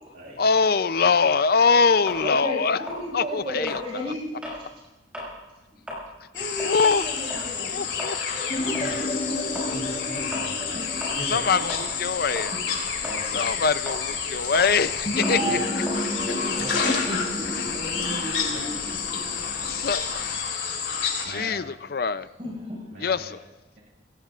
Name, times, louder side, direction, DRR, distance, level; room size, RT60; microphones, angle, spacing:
voice 1, 0.4-2.9 3.1-4.0 6.6-7.0 7.6-8.6 11.3-12.6 13.3-14.9 15.2-15.6 17.5-17.6 19.7-20.2 21.2-22.3 23.0-23.4, left 5 dB, 55° left, 14 dB, 0.5 m, -23 dB
sound 1, 2.1-4.7 5.0-5.4 5.7-12.1 12.3-17.1, left 1 dB, 5° right, 6.3 m, -38 dB
voice 2, 2.2-4.7 6.3-8.6 9.3-9.7 10.7-10.8 12.5-12.6 15.1-18.8 19.1-19.7 22.4-22.9, equal, 30° right, -2 dB, 5.3 m, -34 dB
sound 2, 6.3-21.3, left 6 dB, 85° left, 3.0 m, -29 dB
sound 3, 8.5-20.3, equal, 35° left, 1.2 m, -34 dB
voice 3, 8.8-9.1 9.7-10.8 11.1-11.7 13.0-13.6 14.3-14.6 15.4-15.6 16.6-16.7 21.2-21.7 22.9-23.3, right 1 dB, 75° right, -5 dB, 2.5 m, -39 dB
27.0 x 17.0 x 2.5 m, 1.1 s
head